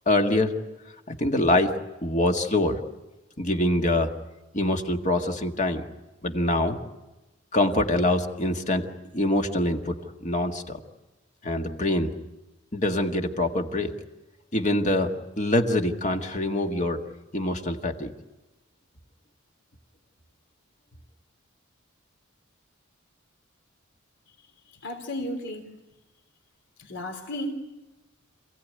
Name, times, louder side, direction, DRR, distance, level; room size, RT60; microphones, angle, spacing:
voice 1, 0.0-0.5 1.1-1.7 2.0-2.8 3.4-4.1 4.5-5.8 6.2-6.8 7.5-8.8 9.1-10.8 11.4-12.1 12.7-14.0 14.5-17.0 17.3-18.1, left 1 dB, 35° left, 4 dB, 1.7 m, -24 dB
voice 2, 24.8-25.7 26.8-27.5, left 1 dB, 60° left, 4 dB, 3.3 m, -33 dB
27.5 x 16.5 x 9.5 m, 1.1 s
head